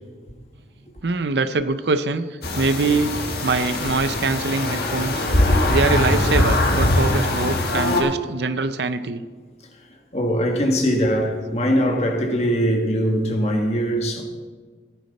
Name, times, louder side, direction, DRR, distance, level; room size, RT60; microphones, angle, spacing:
voice 1, 1.0-2.3 2.6-5.2 5.7-9.3, right 3 dB, 75° right, 0.6 m, -23 dB
sound 1, 2.4-8.0, left 1 dB, 60° left, 1.6 m, -21 dB
voice 2, 10.1-14.2, equal, 35° left, 1.6 m, -21 dB
14.5 x 9.8 x 4.1 m
head